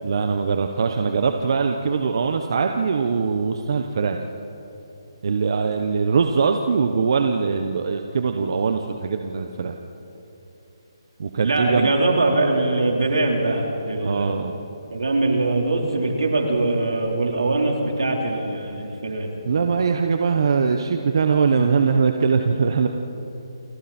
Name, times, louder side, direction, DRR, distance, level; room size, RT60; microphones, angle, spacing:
voice 1, 0.0-4.2 5.2-9.8 11.2-11.9 14.0-14.5 19.4-22.9, right 5 dB, 55° right, 5 dB, 1.2 m, -22 dB
voice 2, 11.4-14.3 14.9-19.3, right 2 dB, 85° right, 0 dB, 4.3 m, -22 dB
30.0 x 24.5 x 4.5 m, 3.0 s
hypercardioid pair, 160°, 3 cm